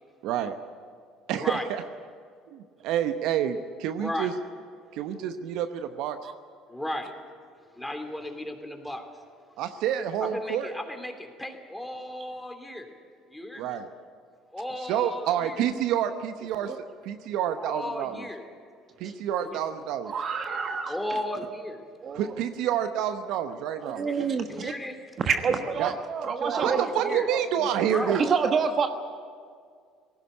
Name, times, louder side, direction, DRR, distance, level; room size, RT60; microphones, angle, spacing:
voice 1, 0.2-0.6 1.3-1.8 2.5-4.3 4.9-6.2 9.6-10.7 13.6-13.8 14.9-16.7 17.0-18.3 19.0-20.1 22.1-24.0 25.8-25.9 26.6-28.2, right 10 dB, 65° right, 9 dB, 0.9 m, -28 dB
voice 2, 3.9-4.3 6.7-7.1 7.7-9.0 10.2-12.9 13.3-13.6 14.5-15.7 17.5-18.4 19.4-19.6 20.9-21.8 24.0-24.2 24.5-25.0 26.6-27.3 27.6-28.1, left 1 dB, 5° left, 4 dB, 3.1 m, -35 dB
voice 3, 20.0-21.0 22.0-22.4 23.8-24.7 25.2-27.4 28.1-28.9, right 5 dB, 45° right, 7 dB, 1.3 m, -28 dB
18.5 x 16.0 x 9.6 m, 2.1 s
hypercardioid pair, 65°, 0 cm